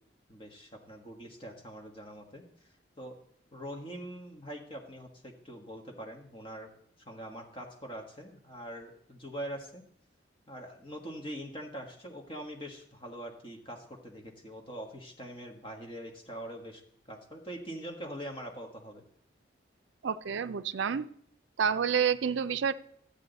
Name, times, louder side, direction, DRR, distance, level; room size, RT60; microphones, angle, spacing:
voice 1, 0.3-2.4 3.0-3.2 3.5-6.7 7.0-9.9 10.5-16.8 17.1-19.0, equal, 30° left, 1 dB, 1.5 m, -43 dB
voice 2, 20.0-21.1 21.6-22.7, right 7 dB, 70° right, 13 dB, 0.4 m, -29 dB
12.5 x 8.4 x 4.0 m, 0.66 s
head